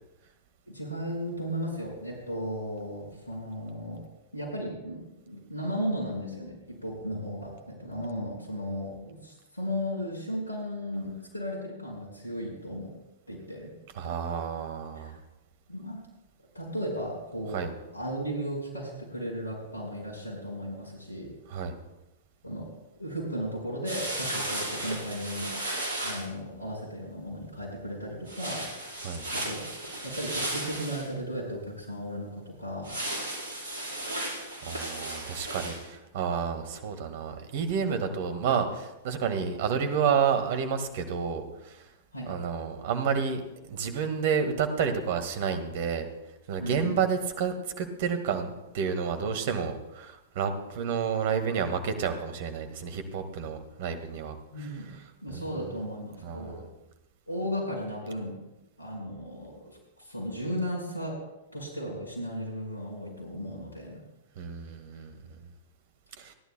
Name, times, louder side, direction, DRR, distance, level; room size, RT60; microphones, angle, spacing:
voice 1, 0.7-4.0 4.3-12.9 13.3-13.7 14.9-15.1 15.7-16.0 16.5-17.6 17.9-21.3 22.4-22.7 23.0-25.5 26.0-28.7 29.3-29.6 30.0-32.9 42.1-42.3 46.6-47.0 54.5-54.9 55.2-56.6 57.3-58.4 58.8-61.2 61.5-64.0, equal, 80° left, 0 dB, 5.1 m, -35 dB
voice 2, 14.0-15.2 17.5-17.7 21.5-21.7 29.0-29.2 34.6-41.8 42.3-46.1 46.5-54.7 55.3-55.4 56.2-56.6 64.4-65.1 66.2-66.3, right 6 dB, 50° right, 8 dB, 1.7 m, -30 dB
sound 1, 23.8-26.2 28.3-31.1 32.8-35.8, right 1 dB, 70° right, 4.7 m, -35 dB
29.5 x 11.0 x 2.2 m, 0.98 s
figure-of-eight pair, 100°, 0 cm